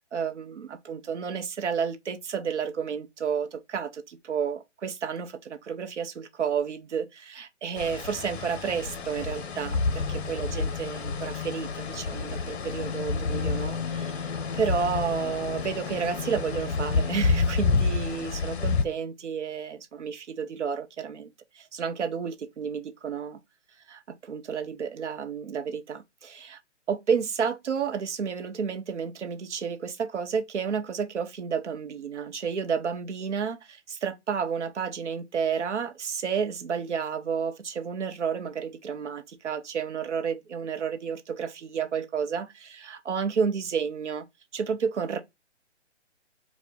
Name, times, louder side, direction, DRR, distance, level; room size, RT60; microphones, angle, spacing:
voice 1, 0.1-23.4 23.9-26.6 26.9-44.2 44.5-45.2, right 6 dB, 70° right, 1.0 m, -31 dB
sound 1, 7.8-18.8, left 4 dB, 60° left, 0.8 m, -29 dB
4.1 x 2.5 x 3.6 m
hypercardioid pair, 155°, 36 cm